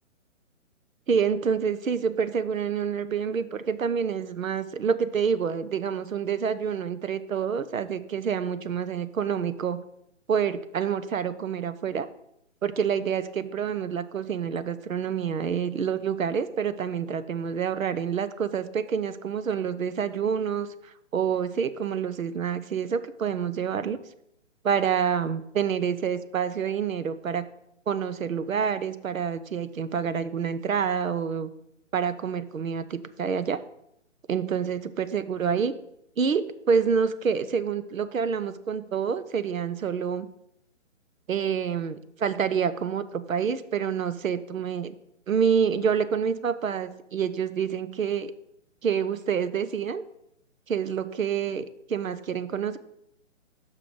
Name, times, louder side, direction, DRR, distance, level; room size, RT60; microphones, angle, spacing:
voice 1, 1.1-9.8 10.3-12.1 12.6-20.7 21.1-24.0 24.6-27.5 27.9-31.5 31.9-33.6 34.3-35.7 36.2-40.3 41.3-44.9 45.3-48.3 48.8-50.0 50.7-52.8, right 7 dB, 90° right, 13 dB, 0.7 m, -27 dB
6.1 x 5.8 x 5.0 m, 0.78 s
figure-of-eight pair, 145°, 39 cm